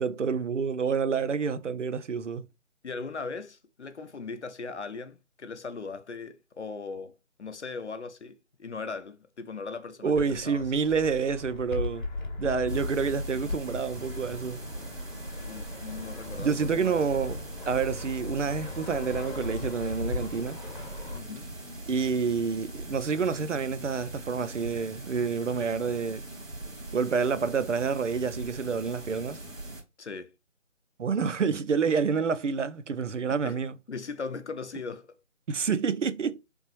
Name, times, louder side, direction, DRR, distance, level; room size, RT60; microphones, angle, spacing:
voice 1, 0.0-2.5 10.0-12.1 12.4-14.6 16.4-17.4 17.7-20.6 21.9-26.2 26.9-29.4 31.0-33.8 35.5-36.4, right 5 dB, 70° right, 0.6 m, -28 dB
voice 2, 2.8-7.1 7.4-10.7 15.4-17.0 21.1-21.5 30.0-30.3 33.4-33.6 33.9-35.2, left 4 dB, 60° left, 0.6 m, -39 dB
Fixed-wing aircraft airplane, 10.1-21.2, left 2 dB, 35° left, 1.0 m, -38 dB
sound 1, 12.7-29.8, right 1 dB, 85° right, 1.7 m, -41 dB
3.9 x 3.5 x 2.9 m
figure-of-eight pair, 165°, 39 cm